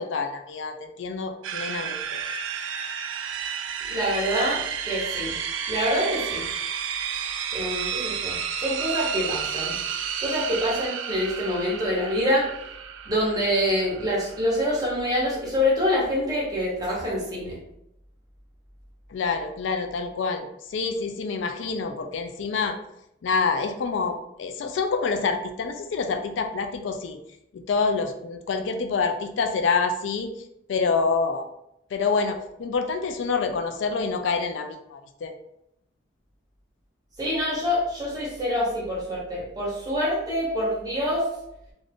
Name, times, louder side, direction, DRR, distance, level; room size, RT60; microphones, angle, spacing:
voice 1, 0.0-2.2 19.1-22.8 23.2-27.2 27.5-30.3 30.7-31.5 31.9-35.3, left 4 dB, 75° left, 6 dB, 0.4 m, -27 dB
sound 1, 1.4-15.5, right 8 dB, 85° right, 0.3 m, -32 dB
voice 2, 3.9-5.4 5.7-6.4 7.5-9.8 10.2-12.5 13.1-17.6 37.2-41.3, equal, 20° right, -5 dB, 0.9 m, -26 dB
2.5 x 2.4 x 3.4 m, 0.79 s
head